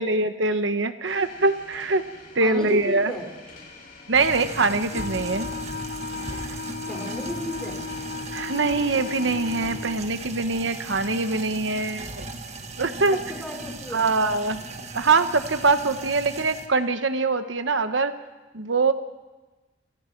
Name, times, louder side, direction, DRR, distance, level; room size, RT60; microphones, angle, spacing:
voice 1, 0.0-2.0 2.3-3.1 4.1-5.5 8.3-12.3 12.8-13.2 13.9-14.6 14.9-18.1 18.5-18.9, right 3 dB, 80° right, 9 dB, 1.1 m, -23 dB
sound 1, 1.0-9.7, left 3 dB, 50° left, 6.6 m, -47 dB
voice 2, 2.4-3.3 6.9-7.8 13.1-14.1, equal, 5° left, 0 dB, 5.3 m, -33 dB
sound 2, 4.1-16.7, right 2 dB, 35° right, 1.8 m, -37 dB
Wind instrument woodwind instrument, 4.9-10.1, left 5 dB, 80° left, 0.7 m, -35 dB
27.5 x 27.0 x 4.6 m, 1.2 s
head